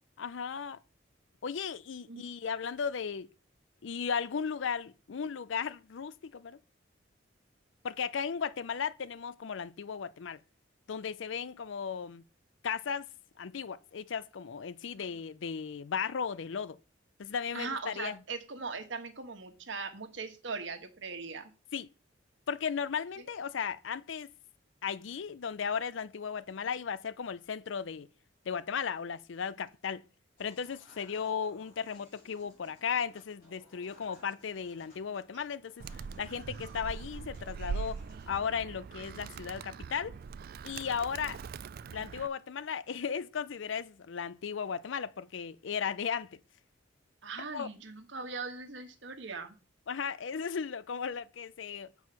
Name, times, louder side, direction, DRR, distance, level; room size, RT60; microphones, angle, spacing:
voice 1, 0.2-0.8 1.4-3.3 3.8-6.6 7.8-10.4 10.9-12.2 12.6-13.1 13.4-16.8 17.2-18.2 21.7-21.9 22.5-24.3 24.8-28.1 28.5-30.0 30.4-35.8 36.2-38.0 38.3-40.2 40.6-41.4 41.9-46.4 47.5-47.7 49.9-51.9, left 6 dB, 70° left, 0.5 m, -36 dB
voice 2, 17.5-21.5 47.2-49.5, right 4 dB, 65° right, 1.3 m, -40 dB
Human voice / Acoustic guitar / Piano, 30.4-38.4, left 2 dB, 50° left, 4.8 m, -61 dB
Animal, 35.8-42.3, right 5 dB, 50° right, 0.3 m, -42 dB
7.7 x 4.7 x 5.6 m
head